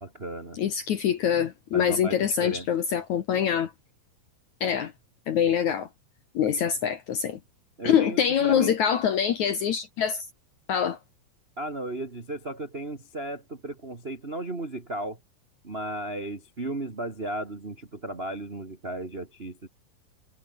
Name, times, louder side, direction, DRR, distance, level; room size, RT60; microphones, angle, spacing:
voice 1, 0.0-0.6 1.7-2.7 6.5-6.6 7.8-8.7 11.6-15.2 15.6-19.7, right 1 dB, 35° right, 0.9 m, -35 dB
voice 2, 0.6-3.7 4.6-4.9 5.3-5.9 6.3-7.4 7.8-10.3 10.7-11.0, left 8 dB, 60° left, 2.0 m, -24 dB
omnidirectional pair, 4.9 m